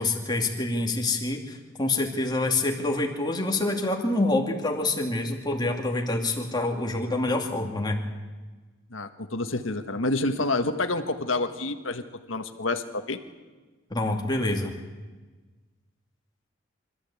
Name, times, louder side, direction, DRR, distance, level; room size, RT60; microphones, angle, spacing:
voice 1, 0.0-8.0 13.9-14.7, left 2 dB, 20° left, 1 dB, 2.5 m, -26 dB
voice 2, 8.9-12.0 12.3-13.2, left 2 dB, 85° left, 8 dB, 1.5 m, -28 dB
25.0 x 14.0 x 8.5 m, 1.3 s
head